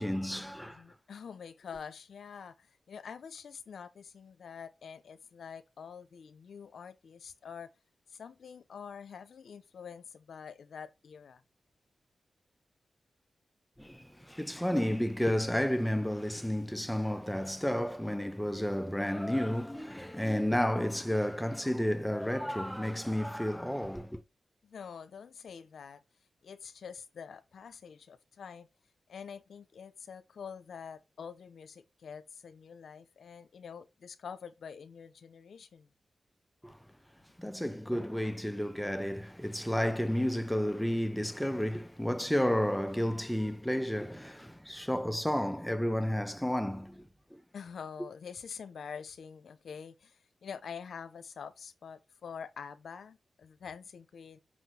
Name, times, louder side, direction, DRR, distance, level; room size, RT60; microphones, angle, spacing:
voice 1, 0.0-0.8 13.8-24.2 36.6-36.8 37.4-47.4, equal, 5° left, 1.1 m, -31 dB
voice 2, 0.6-7.7 8.1-11.4 24.6-26.0 26.4-28.7 29.1-35.9 47.5-54.4, left 6 dB, 80° left, 0.9 m, -46 dB
6.2 x 6.2 x 6.0 m
cardioid pair, 55°, 0 cm